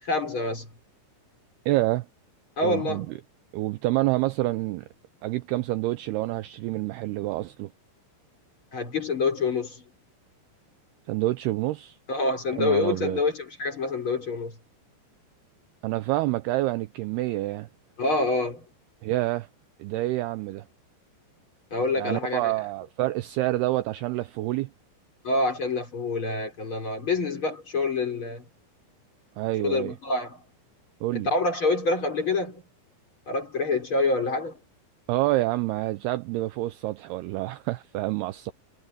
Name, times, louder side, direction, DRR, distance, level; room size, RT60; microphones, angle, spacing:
voice 1, 0.0-0.7 2.6-3.1 8.7-9.8 12.1-14.5 18.0-18.6 21.7-22.5 25.2-28.5 29.6-30.4 31.1-32.6 33.3-34.6, left 3 dB, 30° left, 4.7 m, -26 dB
voice 2, 1.7-2.1 2.6-3.1 3.5-4.9 5.2-7.7 11.1-12.0 12.6-13.2 15.8-17.7 19.0-19.5 19.8-20.7 22.0-24.7 29.4-29.9 31.0-31.3 35.1-38.5, right 17 dB, 80° right, 2.4 m, -27 dB
omnidirectional pair, 5.2 m